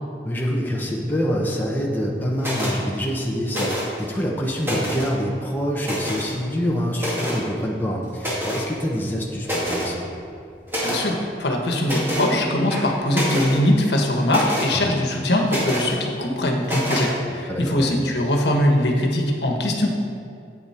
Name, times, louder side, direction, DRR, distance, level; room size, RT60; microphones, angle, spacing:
voice 1, 0.2-10.1 14.7-14.8 17.3-17.9, equal, 10° left, -3 dB, 0.9 m, -26 dB
sound 1, 2.4-2.8 3.5-4.0 4.5-5.1 5.8-6.3 7.0-7.4 8.2-8.7 9.1-9.2 9.4-9.9 10.7-11.0 11.8-12.3 12.7-13.6 14.3-14.7 15.5-15.9 16.6-17.1, equal, 15° right, 2.1 m, -26 dB
voice 2, 10.8-19.9, left 1 dB, 75° left, 1 dB, 1.3 m, -21 dB
11.0 x 8.3 x 4.4 m, 2.4 s
head